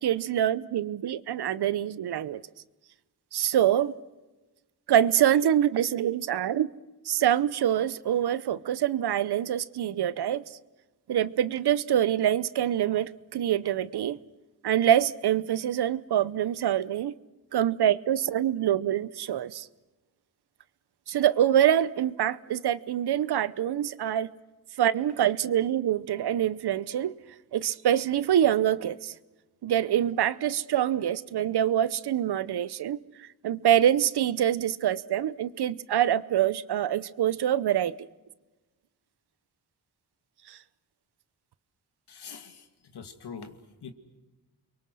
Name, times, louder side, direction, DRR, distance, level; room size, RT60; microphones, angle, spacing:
voice 1, 0.0-2.4 3.3-3.9 4.9-6.7 7.0-10.4 11.1-14.2 14.6-17.1 17.5-19.7 21.1-24.3 24.8-27.2 27.5-29.1 29.6-37.9 40.5-40.6, right 10 dB, 80° right, 0.8 m, -25 dB
voice 2, 42.1-42.7 42.9-43.9, left 6 dB, 80° left, 2.5 m, -43 dB
29.5 x 23.0 x 6.3 m
cardioid pair, 80°, 39 cm